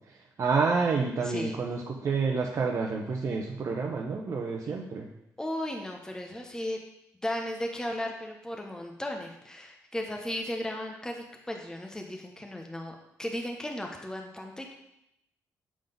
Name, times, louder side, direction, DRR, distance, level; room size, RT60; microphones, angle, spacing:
voice 1, 0.4-5.1, right 4 dB, 50° right, -1 dB, 0.9 m, -28 dB
voice 2, 1.2-1.6 5.4-6.8 7.2-14.7, left 1 dB, 10° left, 2 dB, 1.0 m, -35 dB
7.5 x 3.9 x 5.2 m, 0.82 s
supercardioid pair, 65°, 7 cm